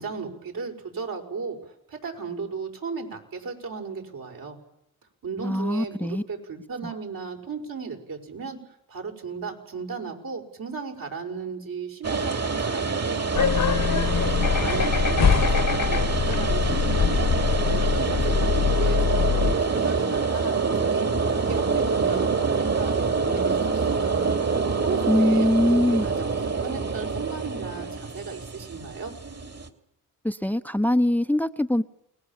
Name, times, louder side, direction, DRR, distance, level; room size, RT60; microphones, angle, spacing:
voice 1, 0.0-4.6 5.2-8.6 8.9-14.0 14.6-21.1 21.4-24.2 24.8-25.8 26.0-26.3 26.6-29.1, right 5 dB, 70° right, 5.9 m, -35 dB
voice 2, 5.4-6.2 6.8-6.9 25.1-26.1 30.2-31.8, left 1 dB, 5° left, 0.9 m, -22 dB
sound 1, 12.0-29.7, right 4 dB, 45° right, 2.9 m, -26 dB
sound 2, 13.3-19.6, left 6 dB, 60° left, 1.6 m, -23 dB
29.0 x 20.5 x 7.5 m
supercardioid pair, 50°, 35 cm